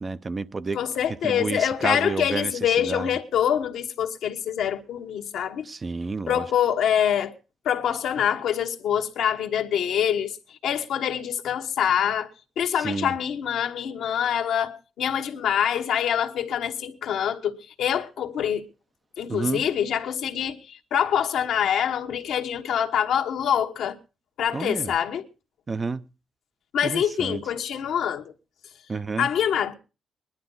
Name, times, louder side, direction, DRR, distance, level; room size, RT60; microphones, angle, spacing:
voice 1, 0.0-0.8 1.2-3.2 5.6-6.5 12.8-13.1 19.3-19.7 24.5-24.9 25.7-26.0 26.8-27.4 28.9-29.3, right 4 dB, 30° right, 0.6 m, -30 dB
voice 2, 0.7-5.7 6.3-7.3 7.6-10.4 10.6-12.3 12.6-18.6 19.2-23.9 24.4-25.2 26.7-28.2 29.2-29.7, left 9 dB, 70° left, 1.3 m, -25 dB
20.0 x 11.5 x 3.9 m
cardioid pair, 85°, 0 cm